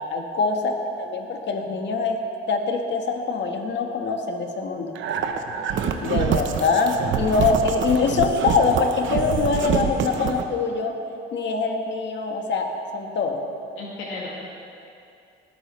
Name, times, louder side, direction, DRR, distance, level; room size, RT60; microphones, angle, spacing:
voice 1, 0.1-2.2 2.5-4.9 6.0-11.0 11.3-12.7 12.9-13.4, left 4 dB, 65° left, 3 dB, 1.6 m, -23 dB
sound 1, 5.0-10.4, right 7 dB, 75° right, 0.9 m, -26 dB
voice 2, 5.5-6.0 6.6-6.7 13.8-14.3, left 3 dB, 90° left, -5 dB, 2.3 m, -37 dB
19.5 x 13.0 x 3.3 m, 2.6 s
cardioid pair, 90°, 20 cm